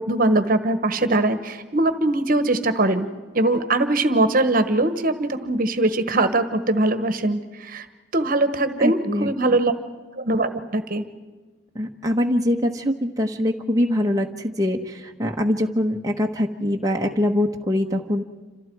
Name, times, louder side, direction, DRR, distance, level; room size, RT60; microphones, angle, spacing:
voice 1, 0.0-3.1 3.3-7.9 8.1-9.7 10.2-11.0, right 2 dB, 50° right, 10 dB, 1.3 m, -21 dB
voice 2, 8.8-9.6 11.7-18.2, left 1 dB, 20° right, 1 dB, 1.1 m, -23 dB
28.5 x 27.0 x 4.7 m, 1.3 s
head